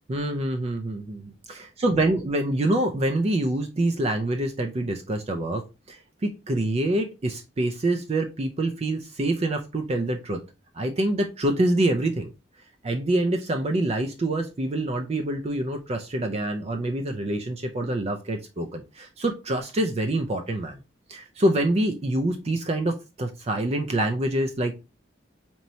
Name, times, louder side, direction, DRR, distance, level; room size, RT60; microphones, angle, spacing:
voice 1, 0.1-5.6 5.9-10.4 10.7-12.3 12.8-20.8 21.1-24.8, right 1 dB, 35° right, 4 dB, 0.4 m, -26 dB
4.3 x 3.0 x 2.7 m, 0.28 s
head